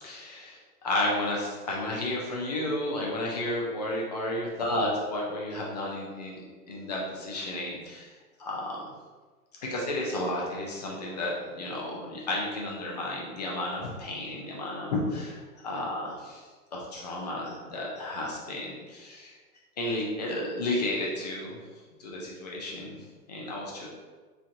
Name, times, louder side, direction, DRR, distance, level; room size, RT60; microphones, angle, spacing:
voice 1, 0.0-8.1 8.4-8.8 9.6-19.4 19.8-21.6 22.0-23.0 23.3-23.9, left 1 dB, 30° left, -3 dB, 0.4 m, -32 dB
3.0 x 2.5 x 2.6 m, 1.4 s
hypercardioid pair, 120°, 47 cm